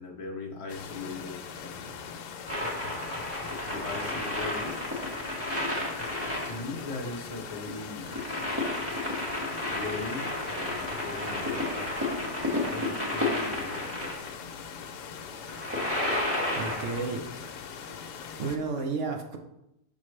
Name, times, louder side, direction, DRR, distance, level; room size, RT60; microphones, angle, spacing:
voice 1, 0.0-2.2 3.6-4.8 6.4-8.3 9.7-14.2, left 3 dB, 25° left, 0 dB, 0.8 m, -39 dB
sound 1, 0.7-18.6, left 6 dB, 80° left, 1.2 m, -42 dB
sound 2, 2.5-14.3 15.4-17.2 18.8-18.9, left 1 dB, 10° right, 1.4 m, -32 dB
voice 2, 16.0-17.7 18.0-19.4, right 4 dB, 60° right, 3 dB, 0.9 m, -34 dB
6.4 x 5.5 x 3.2 m, 0.85 s
omnidirectional pair, 1.7 m